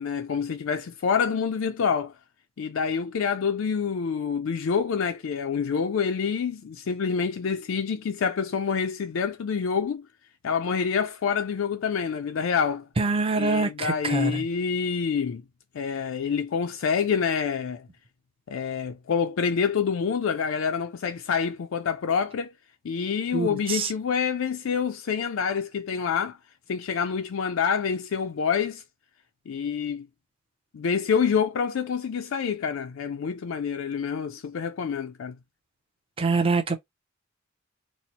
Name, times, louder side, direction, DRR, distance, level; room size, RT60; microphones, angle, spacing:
voice 1, 0.0-2.1 2.6-10.1 10.4-12.9 13.4-15.4 15.7-17.9 18.5-22.5 22.8-26.4 26.7-28.8 29.5-30.1 30.7-35.4, left 6 dB, 70° left, 0.4 m, -27 dB
voice 2, 13.0-14.4 23.3-23.9 36.2-36.8, right 3 dB, 25° right, 0.5 m, -25 dB
4.2 x 2.1 x 2.9 m
head